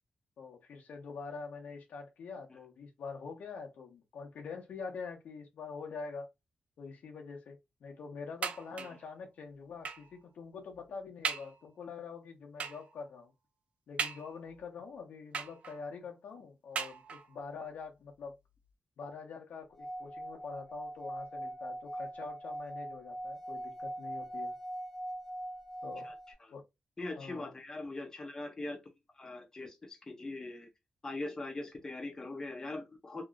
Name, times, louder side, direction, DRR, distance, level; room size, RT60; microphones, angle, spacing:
voice 1, 0.4-6.3 6.8-13.3 13.9-18.4 19.0-24.5 25.8-26.1 26.5-26.6 27.2-27.5, left 5 dB, 85° left, 0.9 m, -45 dB
sound 1, 8.4-9.1 9.8-10.2 10.7-10.8 11.2-11.6 12.6-12.9 14.0-14.6 15.3-15.9 16.7-17.4 18.2-18.3 18.7-18.8, right 6 dB, 60° right, 0.4 m, -38 dB
Singing / Glass, 19.7-26.3, right 1 dB, ahead, 1.2 m, -41 dB
voice 2, 27.0-28.8 29.1-30.7 31.0-33.2, left 2 dB, 25° left, 0.7 m, -41 dB
3.0 x 2.8 x 2.4 m
wide cardioid pair, 145°, 3 cm